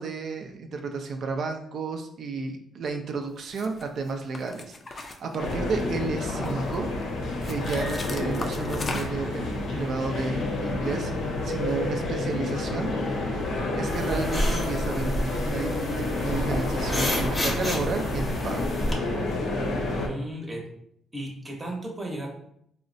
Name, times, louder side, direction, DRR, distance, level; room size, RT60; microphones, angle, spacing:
voice 1, 0.0-6.9 7.4-12.9 13.7-18.7, right 4 dB, 60° right, 4 dB, 0.4 m, -32 dB
sound 1, 3.5-3.8 4.3-5.8 6.2-6.8 7.4-9.3, left 3 dB, 35° left, 0.4 m, -37 dB
sound 2, 5.4-20.1, left 2 dB, 80° left, 0.6 m, -29 dB
sound 3, 13.9-18.9, equal, 20° left, 0.7 m, -30 dB
voice 2, 19.9-20.7 21.1-22.3, right 1 dB, 20° right, 0 dB, 0.8 m, -34 dB
3.6 x 2.1 x 2.6 m, 0.71 s
cardioid pair, 90°, 0 cm